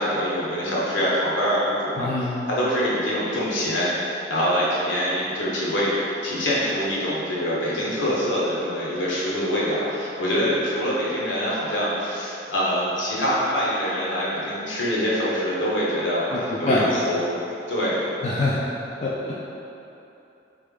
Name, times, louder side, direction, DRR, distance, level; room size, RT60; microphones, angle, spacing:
voice 1, 0.0-5.9 6.2-17.2 17.7-18.1, equal, 80° left, -7 dB, 1.1 m, -24 dB
voice 2, 2.0-2.3 16.3-16.9 18.2-18.7 19.0-19.3, left 2 dB, 35° left, -5 dB, 0.4 m, -24 dB
3.6 x 3.3 x 3.7 m, 2.8 s
head